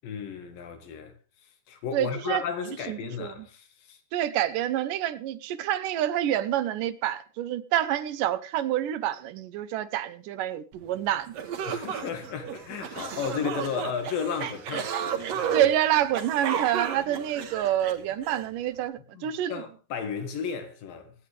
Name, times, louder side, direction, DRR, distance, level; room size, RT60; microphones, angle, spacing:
voice 1, 0.0-1.1 1.7-4.0 11.7-15.7 19.2-21.1, left 6 dB, 90° left, 3.5 m, -34 dB
voice 2, 1.9-2.4 2.9-3.5 4.1-11.4 15.5-19.6, right 12 dB, 80° right, 2.3 m, -27 dB
sound 1, 11.0-11.1 11.3-18.4, right 8 dB, 60° right, 1.9 m, -33 dB
25.0 x 8.5 x 3.3 m
omnidirectional pair, 3.9 m